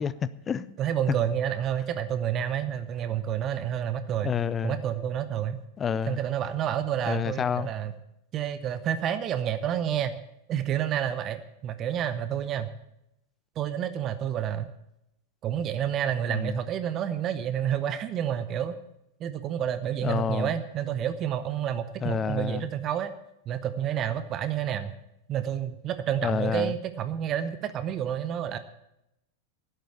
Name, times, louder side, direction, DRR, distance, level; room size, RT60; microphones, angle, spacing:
voice 1, 0.0-0.7 4.2-4.8 5.8-6.2 7.1-7.7 16.3-16.6 20.0-20.5 22.0-22.6 26.2-26.8, left 7 dB, 20° left, 0.5 m, -29 dB
voice 2, 0.8-4.3 4.6-5.6 6.1-7.9 8.3-10.2 10.5-12.7 13.6-14.7 15.4-18.7 19.2-23.1 23.5-24.9 25.3-28.6, right 9 dB, 30° right, 0.8 m, -29 dB
11.5 x 8.0 x 9.0 m
figure-of-eight pair, 90°, 0 cm